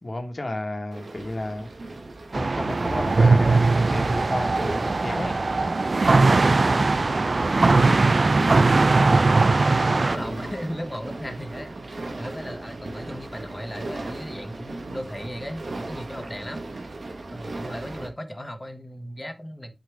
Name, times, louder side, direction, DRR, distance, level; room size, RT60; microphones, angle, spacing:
voice 1, 0.0-1.7 2.3-5.4 10.1-10.5, left 1 dB, 50° left, 1.6 m, -32 dB
sound 1, 0.9-18.1, right 2 dB, 85° right, 1.4 m, -38 dB
sound 2, 2.3-10.2, right 3 dB, 70° right, 0.4 m, -20 dB
voice 2, 6.7-8.6 9.1-16.6 17.3-19.8, equal, 25° left, 1.5 m, -37 dB
7.6 x 5.3 x 3.5 m
wide cardioid pair, 50°, 0 cm